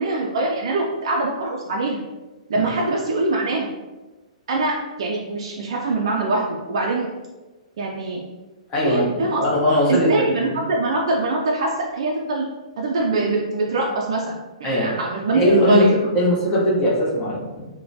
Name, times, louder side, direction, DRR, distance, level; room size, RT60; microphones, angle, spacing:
voice 1, 0.0-2.0 2.5-3.7 4.5-7.1 7.8-8.2 8.8-9.4 9.9-12.5 12.8-14.4 14.6-16.0, right 2 dB, 50° right, -1 dB, 0.3 m, -23 dB
voice 2, 8.7-10.1 14.6-14.9 15.3-15.8 16.1-17.7, equal, 20° left, -6 dB, 0.9 m, -20 dB
2.9 x 2.2 x 2.6 m, 1.2 s
figure-of-eight pair, 115°, 4 cm